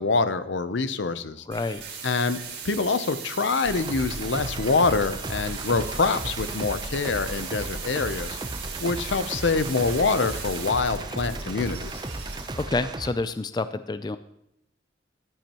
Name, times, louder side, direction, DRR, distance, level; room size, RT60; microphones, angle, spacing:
voice 1, 0.0-1.4 2.0-2.4 2.6-8.4 8.8-12.0, left 4 dB, 80° left, 12 dB, 0.6 m, -25 dB
voice 2, 1.5-1.8 12.5-14.2, left 3 dB, 20° left, 12 dB, 0.3 m, -28 dB
sound 1, 1.5-12.6, right 6 dB, 85° right, 4.1 m, -38 dB
sound 2, 3.6-13.1, right 2 dB, 25° right, 0.6 m, -35 dB
sound 3, 4.8-12.0, equal, ahead, 2.0 m, -50 dB
14.5 x 10.0 x 3.0 m, 0.80 s
head